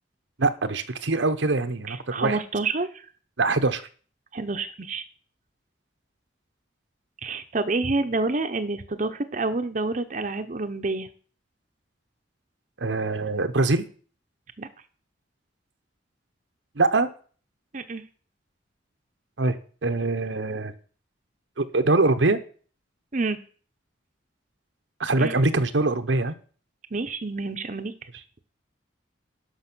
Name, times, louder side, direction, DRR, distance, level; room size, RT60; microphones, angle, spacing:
voice 1, 0.4-2.4 3.4-3.8 12.8-13.8 16.8-17.1 19.4-20.7 21.6-22.4 25.0-26.3, right 3 dB, 80° right, 9 dB, 0.9 m, -23 dB
voice 2, 1.9-3.1 4.3-5.0 7.2-11.1 14.6-14.7 17.7-18.0 23.1-23.4 25.2-25.3 26.9-27.9, right 3 dB, 40° right, 8 dB, 0.8 m, -28 dB
11.5 x 6.1 x 6.1 m, 0.42 s
head